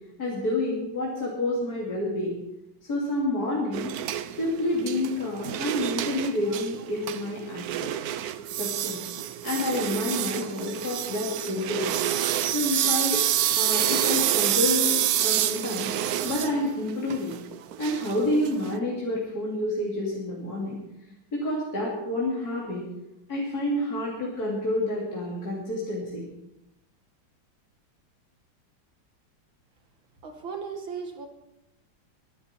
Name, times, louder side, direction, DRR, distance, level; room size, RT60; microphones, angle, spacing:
voice 1, 0.2-2.4 2.8-4.0 4.4-7.9 8.6-9.0 9.4-12.0 12.5-13.2 13.5-15.9 16.2-17.4 17.8-20.8 21.3-22.8 23.3-26.3, left 1 dB, 50° left, -5 dB, 3.4 m, -29 dB
sound 1, 3.7-18.7, right 12 dB, 65° right, 1.0 m, -28 dB
voice 2, 30.2-31.3, right 5 dB, 90° right, 5 dB, 2.7 m, -36 dB
23.0 x 11.0 x 4.5 m, 0.88 s
omnidirectional pair, 2.1 m